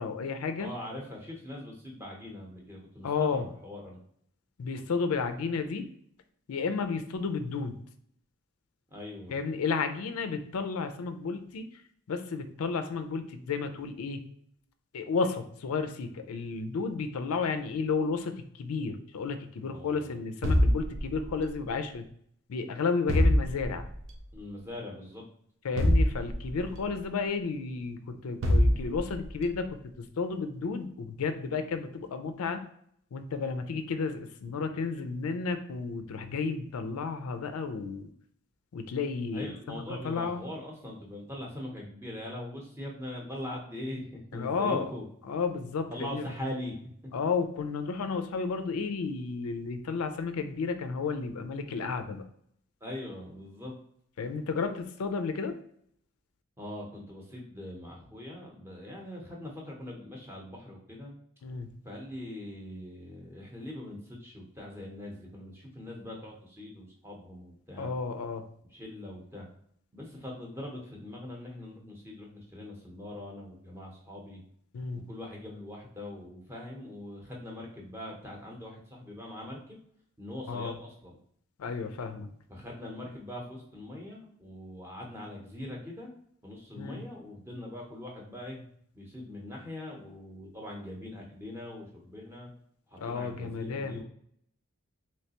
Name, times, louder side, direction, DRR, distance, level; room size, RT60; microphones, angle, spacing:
voice 1, 0.0-0.7 3.0-3.4 4.6-5.9 6.5-7.8 9.3-11.6 12.1-14.2 14.9-22.1 22.5-23.8 25.6-32.6 33.1-38.1 38.7-39.5 40.0-40.5 44.3-44.9 45.3-46.2 47.1-52.2 54.2-55.5 61.4-61.7 67.8-68.4 74.7-75.0 80.5-80.8 81.6-82.3 86.8-87.0 93.0-94.0, left 4 dB, 85° left, 8 dB, 0.4 m, -32 dB
voice 2, 0.6-4.0 8.9-9.4 19.7-20.2 24.3-25.3 39.3-45.0 45.9-46.7 52.8-53.7 56.6-61.1 61.8-68.0 68.7-69.5 69.9-74.4 74.9-79.8 80.2-81.2 82.5-86.1 86.4-88.6 88.9-92.5 92.9-94.0, left 1 dB, 10° right, -2 dB, 0.7 m, -42 dB
sound 1, 20.4-21.6 23.1-24.0 25.8-26.9 28.4-29.4, equal, 55° right, 0.5 m, -25 dB
3.3 x 3.1 x 2.8 m, 0.67 s
head